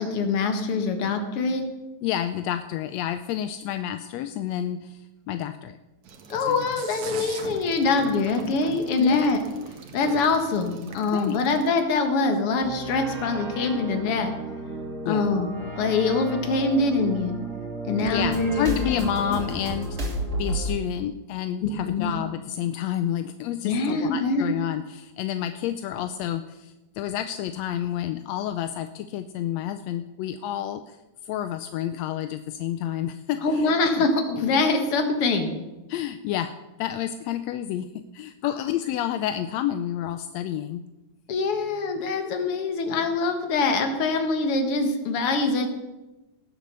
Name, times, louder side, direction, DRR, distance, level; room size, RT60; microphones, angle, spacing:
voice 1, 0.0-1.7 6.3-9.4 9.9-14.3 15.1-17.4 17.8-19.4 21.6-22.1 23.6-24.5 33.4-35.5 38.4-38.5 41.3-45.7, left 3 dB, 55° left, 6 dB, 2.2 m, -24 dB
voice 2, 2.0-5.8 6.5-6.6 9.0-9.3 11.1-11.4 15.0-15.3 18.1-20.1 20.4-34.1 35.9-40.9, left 11 dB, 80° left, 10 dB, 1.6 m, -30 dB
sound 1, 6.0-11.7, right 5 dB, 70° right, 2.7 m, -41 dB
sound 2, 12.6-20.7, right 2 dB, 25° right, 2.6 m, -32 dB
18.0 x 7.4 x 6.7 m, 1.0 s
omnidirectional pair, 3.4 m